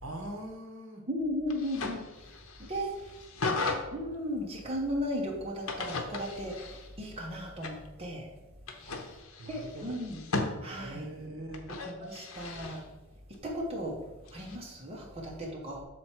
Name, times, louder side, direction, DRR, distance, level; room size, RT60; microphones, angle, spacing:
voice 1, 0.0-1.1 8.9-9.0 9.4-10.0 10.8-11.7, right 1 dB, 65° right, 2 dB, 1.0 m, -42 dB
voice 2, 1.1-2.0 2.6-3.1 3.4-3.6 3.9-8.3 9.5-10.2 10.6-11.1 11.8-12.8 13.3-14.0 14.3-15.8, equal, 30° right, -2 dB, 1.1 m, -36 dB
sound 1, 1.5-3.8 5.6-7.1 7.6-7.9 8.7-10.5 11.5-12.8 14.3-14.6, left 3 dB, 80° left, 0.8 m, -36 dB
6.4 x 4.4 x 4.5 m, 1.1 s
head